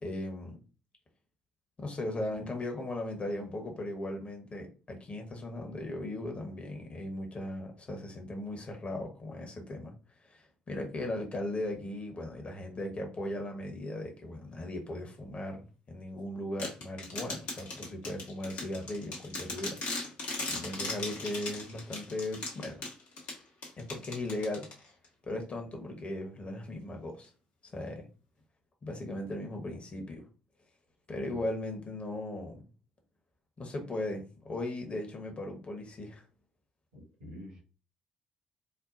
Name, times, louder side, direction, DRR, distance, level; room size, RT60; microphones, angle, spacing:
voice 1, 0.0-0.6 1.8-9.9 10.2-19.8 20.5-22.8 23.8-24.7 25.3-27.3 27.7-28.1 28.8-30.3 31.1-32.7 33.6-36.2, left 1 dB, 35° left, 2 dB, 1.2 m, -37 dB
sound 1, 16.6-25.1, left 3 dB, 65° left, 1.2 m, -39 dB
voice 2, 36.9-37.6, left 1 dB, 75° right, -5 dB, 1.7 m, -47 dB
4.4 x 2.3 x 2.6 m, 0.34 s
figure-of-eight pair, 45°, 4 cm